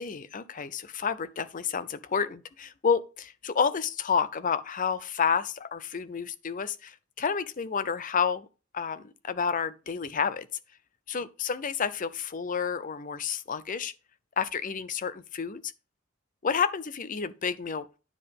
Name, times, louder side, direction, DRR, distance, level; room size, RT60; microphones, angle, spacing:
voice 1, 0.0-8.5 8.7-10.5 11.1-13.9 14.4-15.7 16.4-18.0, left 6 dB, 40° left, 0.6 m, -30 dB
9.8 x 3.9 x 5.3 m
head